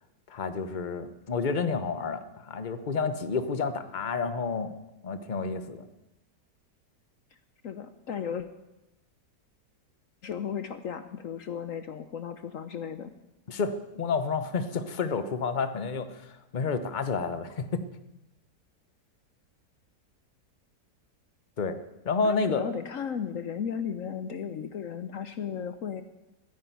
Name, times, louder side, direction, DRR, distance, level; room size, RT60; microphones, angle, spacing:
voice 1, 0.3-4.7 5.0-5.8 13.5-16.1 16.5-17.8 21.6-21.8 22.0-22.7, left 4 dB, 35° left, 10 dB, 0.9 m, -30 dB
voice 2, 7.6-8.5 10.2-13.1 22.2-26.0, left 7 dB, 60° left, 10 dB, 1.0 m, -35 dB
13.5 x 10.5 x 9.3 m, 0.96 s
omnidirectional pair, 1.8 m